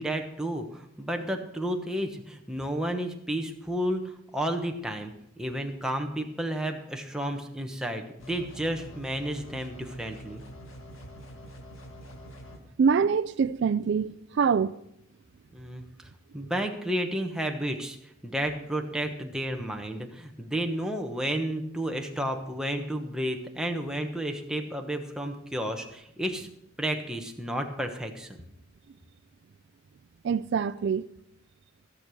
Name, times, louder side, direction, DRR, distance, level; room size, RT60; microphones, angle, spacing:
voice 1, 0.0-4.0 4.3-10.4 15.5-15.8 16.3-18.0 18.2-26.5 26.8-28.3, right 1 dB, 5° right, 1.1 m, -32 dB
sound 1, 8.2-12.6, equal, 85° left, 2.0 m, -45 dB
voice 2, 12.8-14.8 30.2-31.1, right 6 dB, 60° right, 0.3 m, -25 dB
15.5 x 6.8 x 6.2 m
head